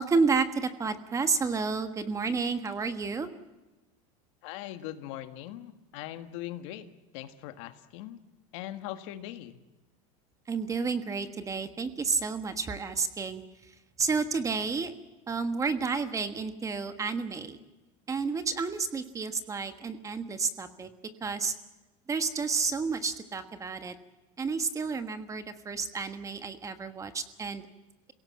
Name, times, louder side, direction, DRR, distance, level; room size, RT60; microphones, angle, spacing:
voice 1, 0.0-3.3 10.5-14.9 15.3-17.6 18.1-20.9 21.2-21.5 22.1-23.9 24.4-27.6, right 4 dB, 20° right, 9 dB, 1.5 m, -31 dB
voice 2, 4.4-6.9 7.1-8.2 8.5-9.6, left 13 dB, 70° left, 9 dB, 1.7 m, -40 dB
27.0 x 17.5 x 7.5 m, 1.1 s
supercardioid pair, 140°, 17 cm